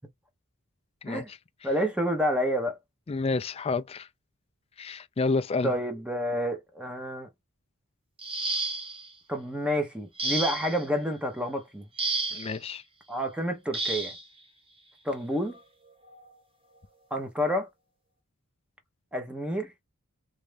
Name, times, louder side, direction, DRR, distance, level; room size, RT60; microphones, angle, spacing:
voice 1, 1.6-2.8 5.6-7.3 9.3-11.8 13.1-14.1 15.0-15.6 17.1-17.7 19.1-19.7, equal, 5° right, 0.9 m, -29 dB
voice 2, 3.1-4.1 4.8-5.7 12.3-12.8, left 3 dB, 25° left, 0.3 m, -29 dB
sound 1, 8.2-9.1 10.2-10.8 12.0-12.6 13.7-14.2 15.4-15.5 16.1-16.3, right 3 dB, 25° right, 1.0 m, -31 dB
3.2 x 2.6 x 3.3 m
head